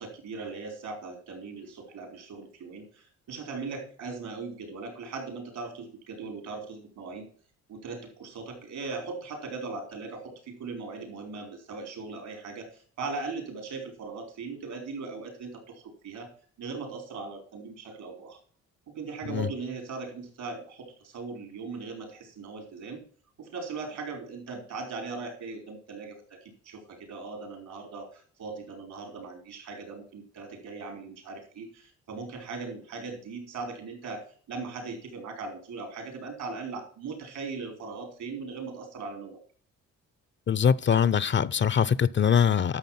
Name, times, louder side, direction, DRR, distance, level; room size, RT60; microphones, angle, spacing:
voice 1, 0.0-7.3 7.7-16.3 16.6-18.4 18.9-23.0 23.4-39.4, right 4 dB, 75° right, 4.8 m, -39 dB
voice 2, 40.5-42.8, left 7 dB, 40° left, 0.6 m, -23 dB
11.0 x 7.0 x 5.9 m
cardioid pair, 90°, 30 cm